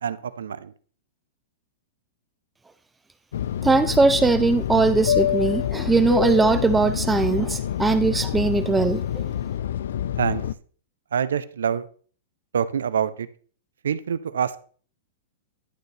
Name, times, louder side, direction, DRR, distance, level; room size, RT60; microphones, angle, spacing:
voice 1, 0.0-0.7 10.2-10.4 11.1-11.9 12.5-13.3 13.8-14.6, right 8 dB, 85° right, 0.6 m, -25 dB
Fixed-wing aircraft airplane, 3.3-10.5, left 10 dB, 75° left, 0.4 m, -26 dB
voice 2, 3.6-9.2, right 3 dB, 10° right, 0.4 m, -20 dB
11.5 x 6.6 x 3.3 m
hypercardioid pair, 125°, 0 cm